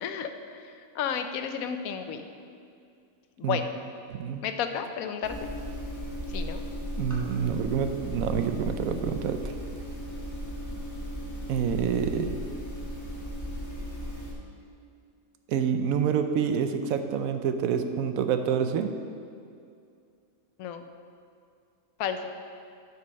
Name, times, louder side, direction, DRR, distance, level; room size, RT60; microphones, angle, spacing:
voice 1, 0.0-2.3 3.4-3.7 4.4-5.5 6.3-6.6 20.6-20.9 22.0-22.3, left 7 dB, 80° left, 8 dB, 1.0 m, -32 dB
voice 2, 4.1-4.4 7.0-9.5 11.5-12.3 15.5-18.9, right 7 dB, 75° right, 7 dB, 1.0 m, -27 dB
sound 1, 5.2-14.3, equal, 15° left, 1.1 m, -36 dB
8.0 x 5.5 x 5.2 m, 2.4 s
omnidirectional pair, 1.5 m